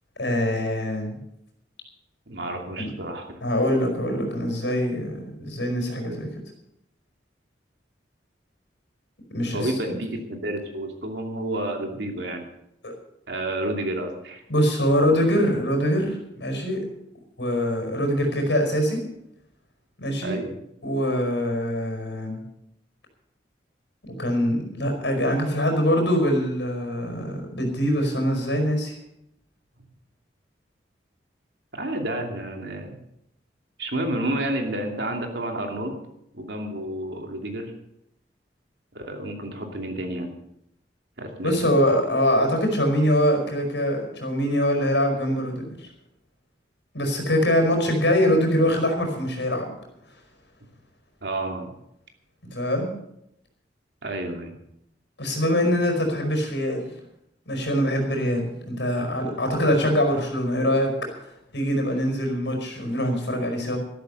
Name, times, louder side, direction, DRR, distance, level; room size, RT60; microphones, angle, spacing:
voice 1, 0.2-1.2 2.8-2.9 3.4-6.3 9.3-9.9 12.8-12.9 14.5-16.8 17.4-19.0 20.0-20.4 20.8-22.4 24.2-28.9 41.4-45.7 46.9-49.7 52.5-52.9 55.2-56.9 57.5-60.9 61.5-63.8, equal, 75° left, 4 dB, 5.0 m, -23 dB
voice 2, 2.3-3.4 9.5-12.5 13.3-14.4 14.9-15.1 20.2-20.5 31.7-33.0 33.8-36.0 36.3-37.7 38.9-40.4 41.2-41.6 51.2-51.7 54.0-54.6, right 1 dB, 70° right, 3 dB, 2.7 m, -30 dB
13.0 x 12.0 x 6.9 m, 0.80 s
head